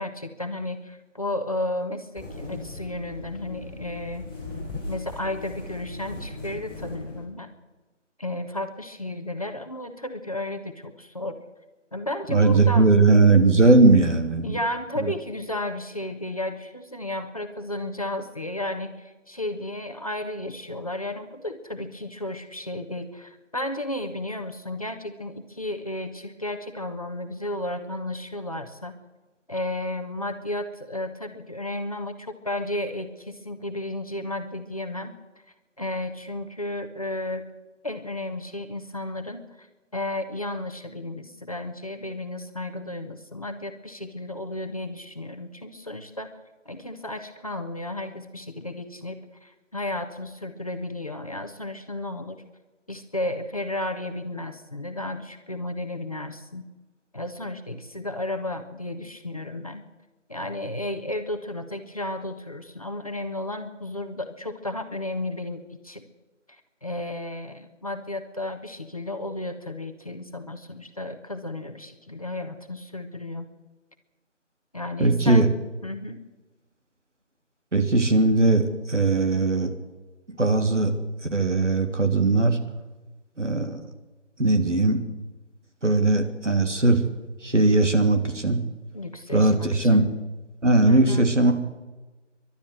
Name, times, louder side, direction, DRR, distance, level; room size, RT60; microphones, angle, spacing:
voice 1, 0.0-4.3 4.8-7.5 8.2-11.4 11.9-12.9 14.4-28.9 29.5-35.1 35.8-37.4 37.8-39.7 39.9-46.3 46.6-52.4 52.9-56.6 57.1-59.8 60.3-66.0 66.5-73.5 74.7-75.5 75.8-76.2 88.9-90.1 90.9-91.3, left 1 dB, 30° left, 5 dB, 1.2 m, -33 dB
sound 1, 2.2-7.2, left 2 dB, ahead, 6.1 m, -38 dB
voice 2, 12.3-14.6 15.0-15.1 75.0-75.5 77.7-79.7 80.4-80.9 81.3-82.6 83.4-83.8 84.4-85.0 85.8-87.0 87.4-88.6 89.3-90.0 90.6-91.5, right 2 dB, 70° right, 5 dB, 3.2 m, -19 dB
29.0 x 12.0 x 7.9 m, 1.2 s
figure-of-eight pair, 170°, 37 cm